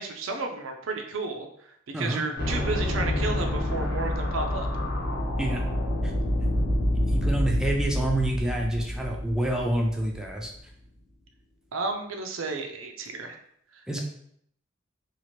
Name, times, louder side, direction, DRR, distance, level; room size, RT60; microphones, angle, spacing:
voice 1, 0.0-4.7 11.7-13.4 13.7-14.0, right 3 dB, 90° right, 4 dB, 0.5 m, -32 dB
sound 1, 2.4-10.4, left 1 dB, 60° left, 0.8 m, -27 dB
voice 2, 7.1-10.5 13.9-14.0, right 1 dB, 5° right, -1 dB, 0.4 m, -27 dB
2.9 x 2.4 x 3.0 m, 0.68 s
head